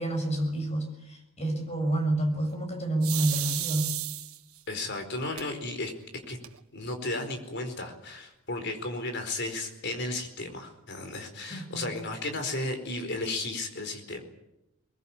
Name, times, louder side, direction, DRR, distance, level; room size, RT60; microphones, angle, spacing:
voice 1, 0.0-3.9 11.5-11.9, right 1 dB, 30° left, 4 dB, 7.0 m, -29 dB
sound 1, 3.0-4.6 5.4-5.5 5.9-6.0 6.2-6.8, right 14 dB, 85° right, 1.7 m, -33 dB
voice 2, 4.7-5.9 6.3-6.4 6.7-14.2, left 2 dB, 55° left, 6 dB, 4.6 m, -34 dB
23.0 x 21.5 x 8.7 m, 0.88 s
head